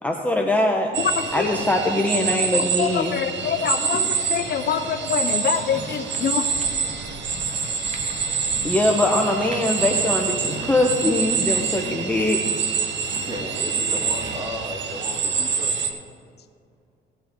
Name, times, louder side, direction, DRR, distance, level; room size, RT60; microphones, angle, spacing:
voice 1, 0.0-0.9 1.3-3.2 8.1-8.2 8.6-12.4, left 1 dB, 5° left, 1 dB, 1.0 m, -22 dB
sound 1, 0.9-15.9, right 5 dB, 65° right, 1.2 m, -26 dB
voice 2, 1.1-1.5 2.8-4.0 4.3-6.4, left 8 dB, 55° left, 9 dB, 0.6 m, -25 dB
voice 3, 3.9-4.3 7.0-7.8 8.5-8.9 13.1-15.8, equal, 20° right, 1 dB, 2.4 m, -36 dB
sound 2, 5.2-14.4, right 2 dB, 35° right, 1.4 m, -41 dB
17.5 x 8.8 x 3.7 m, 2.3 s
cardioid pair, 90°, 20 cm